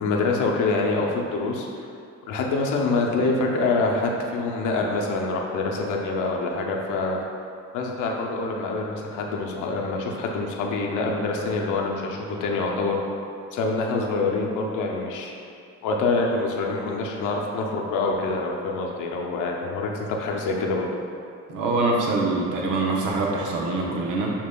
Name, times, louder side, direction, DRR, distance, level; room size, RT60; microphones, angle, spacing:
voice 1, 0.0-1.7 2.2-7.2 7.7-13.0 13.5-15.3 15.8-20.9, left 3 dB, 85° left, 0 dB, 0.6 m, -25 dB
voice 2, 21.5-24.3, right 2 dB, 85° right, -1 dB, 0.7 m, -24 dB
6.7 x 2.9 x 2.2 m, 2.4 s
cardioid pair, 90°, 30 cm